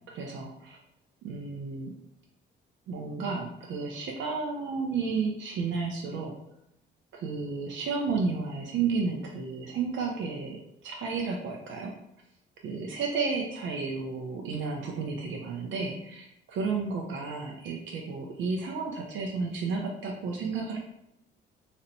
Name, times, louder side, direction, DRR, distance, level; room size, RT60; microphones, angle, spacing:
voice 1, 0.1-0.8 1.2-2.0 2.9-6.4 7.1-12.0 12.6-20.8, right 4 dB, 70° right, 0 dB, 0.5 m, -32 dB
2.6 x 2.0 x 2.8 m, 0.82 s
cardioid pair, 90°, 20 cm